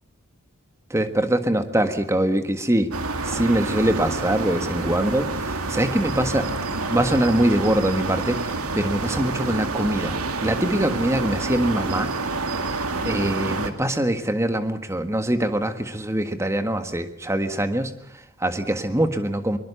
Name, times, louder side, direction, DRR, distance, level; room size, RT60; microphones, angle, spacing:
voice 1, 0.9-2.9 3.2-6.5 6.9-12.1 13.0-19.6, right 1 dB, 15° right, 9 dB, 1.6 m, -23 dB
sound 1, 2.9-13.7, right 3 dB, 85° right, 2.2 m, -28 dB
23.0 x 21.5 x 6.9 m, 0.71 s
head